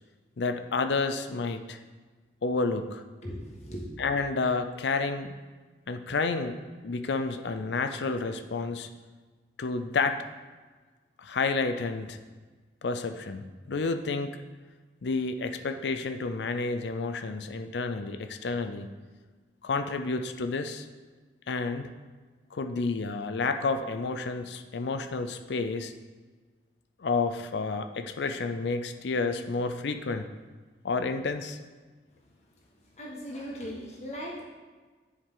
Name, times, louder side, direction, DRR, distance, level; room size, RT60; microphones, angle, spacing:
voice 1, 0.4-1.8 2.4-3.0 4.0-5.4 5.9-6.6 6.8-8.9 9.6-10.2 11.2-12.2 12.8-14.4 15.0-18.9 19.6-20.9 21.5-21.9 22.5-25.9 27.0-30.3 30.8-31.6, left 4 dB, 75° left, 8 dB, 0.5 m, -30 dB
voice 2, 3.2-3.8 32.9-34.4, equal, 35° left, -2 dB, 1.5 m, -38 dB
9.8 x 4.8 x 3.7 m, 1.3 s
head